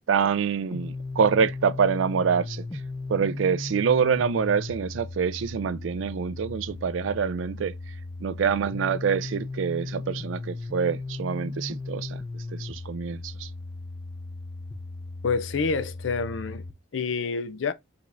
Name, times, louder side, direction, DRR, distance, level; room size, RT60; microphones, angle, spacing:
voice 1, 0.1-2.6 3.1-7.7 8.2-12.2 12.5-13.5, right 6 dB, 80° right, 0.4 m, -26 dB
sound 1, 0.7-16.7, left 3 dB, 20° left, 0.4 m, -36 dB
voice 2, 15.2-16.6 16.9-17.7, left 4 dB, 75° left, 0.5 m, -27 dB
5.0 x 3.3 x 2.4 m
head